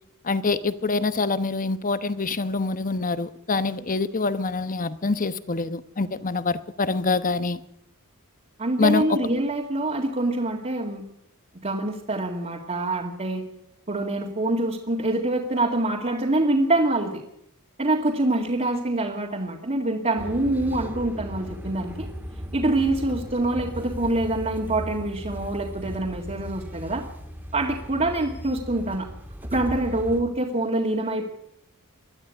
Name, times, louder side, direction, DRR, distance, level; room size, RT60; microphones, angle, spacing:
voice 1, 0.2-7.6 8.8-9.2, left 3 dB, 40° left, 1.0 m, -25 dB
voice 2, 8.6-11.0 11.6-13.4 13.9-17.2 17.8-22.1 22.5-27.0 27.5-29.1 29.5-31.2, right 2 dB, 35° right, 2.2 m, -25 dB
sound 1, 20.2-30.2, equal, 10° right, 2.0 m, -37 dB
21.0 x 13.0 x 9.6 m
head